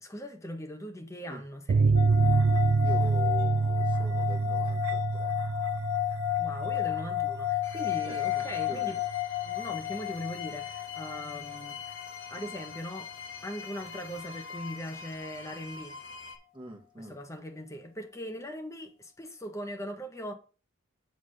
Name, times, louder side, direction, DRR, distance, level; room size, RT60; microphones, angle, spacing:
voice 1, 0.0-2.0 6.4-9.0 9.4-12.0 12.3-13.1 13.4-16.0 17.0-20.3, equal, 15° left, 1.2 m, -40 dB
sound 1, 1.7-8.8 9.0-9.2 9.5-9.6, right 4 dB, 60° right, 0.4 m, -27 dB
sound 2, 1.9-13.3, left 15 dB, 85° right, 0.9 m, -33 dB
voice 2, 2.8-5.3 8.0-9.0 16.5-17.2, right 1 dB, 25° right, 1.4 m, -44 dB
sound 3, 7.6-16.4, left 6 dB, 60° left, 1.5 m, -44 dB
8.1 x 3.6 x 6.5 m
head